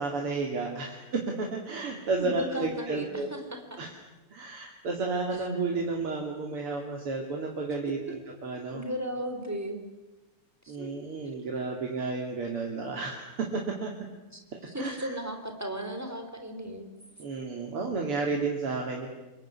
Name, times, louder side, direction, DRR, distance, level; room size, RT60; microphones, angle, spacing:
voice 1, 0.0-3.3 3.8-3.9 4.3-8.8 10.7-13.9 14.8-15.2 17.2-19.1, right 3 dB, 85° right, 1 dB, 3.6 m, -32 dB
voice 2, 2.2-3.8 8.7-9.8 10.6-10.9 14.3-14.4 14.7-16.9, equal, 5° right, 5 dB, 3.9 m, -35 dB
26.5 x 22.0 x 9.9 m, 1.1 s
omnidirectional pair, 2.4 m